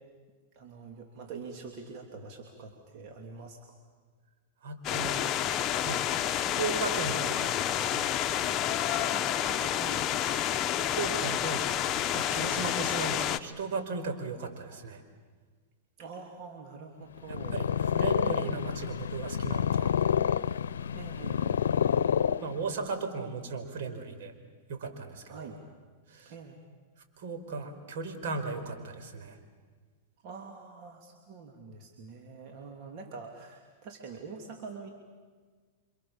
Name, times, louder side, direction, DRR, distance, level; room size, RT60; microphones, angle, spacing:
voice 1, 0.5-3.6 8.9-10.0 16.0-17.7 20.9-21.6 25.3-25.6 26.2-26.6 30.2-34.9, right 4 dB, 45° right, 2 dB, 3.3 m, -45 dB
voice 2, 4.6-5.3 5.8-6.1 6.3-8.1 10.9-15.0 17.3-19.9 22.4-24.3 24.7-25.5 26.1-26.3 27.2-29.4, right 4 dB, 65° right, 6 dB, 4.8 m, -36 dB
sound 1, 4.8-13.4, left 11 dB, 30° left, 1.2 m, -29 dB
Purr, 17.2-22.9, left 8 dB, 85° left, 0.8 m, -28 dB
29.5 x 26.0 x 7.4 m, 1.5 s
hypercardioid pair, 120°, 0 cm